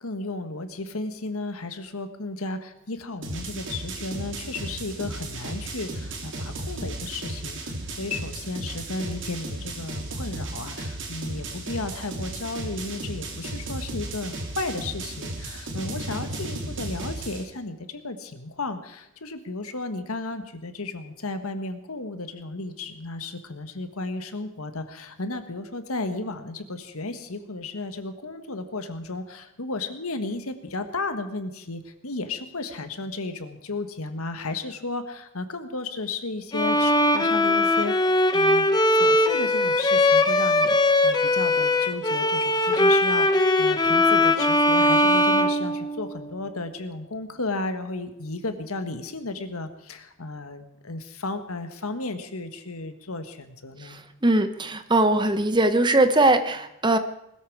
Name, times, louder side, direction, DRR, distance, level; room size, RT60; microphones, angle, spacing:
voice 1, 0.0-54.0, left 2 dB, 80° left, 9 dB, 1.6 m, -34 dB
sound 1, 3.2-17.4, right 2 dB, 55° right, 3.0 m, -34 dB
Bowed string instrument, 36.5-46.3, left 1 dB, 20° left, 0.9 m, -20 dB
voice 2, 53.8-57.0, right 2 dB, 20° right, 10 dB, 0.9 m, -21 dB
20.5 x 13.5 x 4.8 m, 0.81 s
head